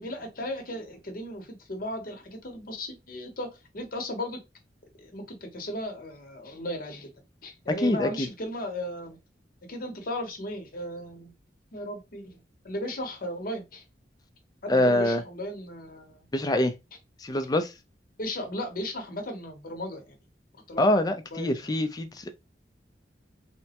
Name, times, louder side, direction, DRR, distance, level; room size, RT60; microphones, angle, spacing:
voice 1, 0.0-4.4 5.0-7.1 7.4-9.2 9.7-11.3 11.7-13.8 14.6-16.3 18.2-20.2 20.7-20.8 21.3-21.5, left 1 dB, 55° left, 0.8 m, -36 dB
voice 2, 7.7-8.3 14.7-15.2 16.3-16.7 17.2-17.7 20.8-22.3, left 1 dB, 20° left, 0.4 m, -24 dB
3.3 x 2.0 x 2.8 m
head